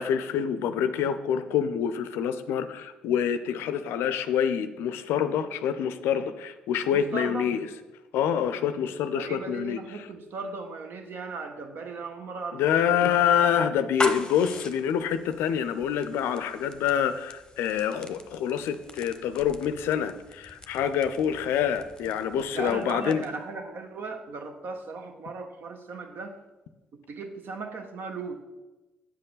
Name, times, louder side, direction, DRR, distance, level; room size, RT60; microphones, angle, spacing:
voice 1, 0.0-7.7 8.1-10.1 12.5-23.2, left 8 dB, 65° left, 11 dB, 0.5 m, -26 dB
voice 2, 6.9-7.5 9.1-12.6 12.9-13.1 22.5-26.4 27.1-28.4, right 4 dB, 55° right, 6 dB, 0.9 m, -37 dB
sound 1, 13.8-23.5, left 2 dB, 15° left, 0.9 m, -40 dB
8.5 x 7.5 x 3.9 m, 1.1 s
figure-of-eight pair, 45°, 4 cm